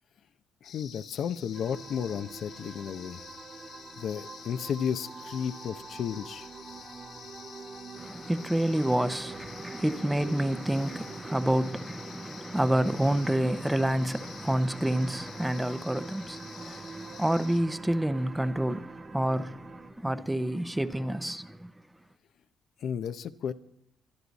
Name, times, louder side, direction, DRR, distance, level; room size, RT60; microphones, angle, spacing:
sound 1, 0.6-17.6, left 7 dB, 85° left, 2.2 m, -49 dB
voice 1, 0.6-3.2 4.0-6.5 22.8-23.5, left 8 dB, 65° left, 0.8 m, -33 dB
sound 2, 1.5-19.9, right 4 dB, 45° right, 2.0 m, -47 dB
voice 2, 8.0-21.7, right 1 dB, 5° right, 0.8 m, -28 dB
23.5 x 11.0 x 4.1 m
cardioid pair, 90°, 0 cm